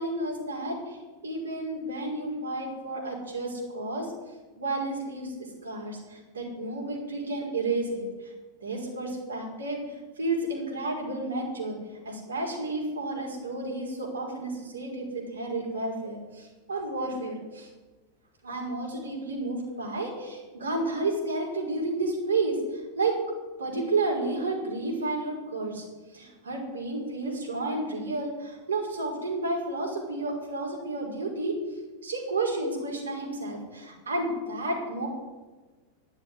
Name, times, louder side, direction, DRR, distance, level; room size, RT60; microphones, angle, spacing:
voice 1, 0.0-4.1 4.6-8.3 8.6-11.8 12.0-17.7 18.4-23.2 23.6-31.6 32.0-35.1, right 2 dB, 75° right, -1 dB, 5.4 m, -31 dB
12.0 x 11.0 x 10.0 m, 1.2 s
figure-of-eight pair, 90°, 0 cm